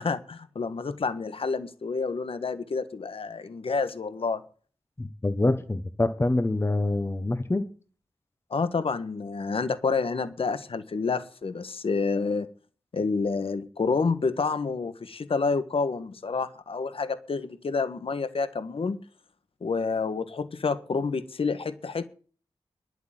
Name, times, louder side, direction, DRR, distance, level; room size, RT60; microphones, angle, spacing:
voice 1, 0.0-4.4 8.5-12.5 12.9-19.0 19.6-22.0, left 4 dB, 65° left, 1.5 m, -28 dB
voice 2, 5.0-7.6, left 2 dB, 25° left, 1.3 m, -26 dB
11.5 x 8.1 x 9.1 m
wide cardioid pair, 95°, 10 cm